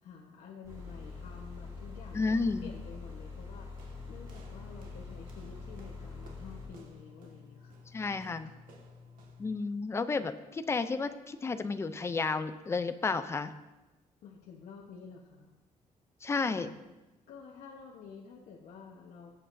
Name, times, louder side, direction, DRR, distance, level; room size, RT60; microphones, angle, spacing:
voice 1, 0.0-7.8 14.2-15.6 16.4-16.8 17.3-19.3, left 6 dB, 85° left, -2 dB, 1.1 m, -50 dB
sound 1, 0.6-6.7, left 4 dB, 25° right, 3.5 m, -44 dB
voice 2, 2.1-2.7 7.9-8.5 9.4-13.5 16.2-16.7, left 4 dB, 20° left, 10 dB, 0.4 m, -32 dB
sound 2, 3.8-9.6, left 2 dB, 85° right, 1.7 m, -53 dB
18.5 x 7.8 x 2.6 m, 1.1 s
wide cardioid pair, 170°, 14 cm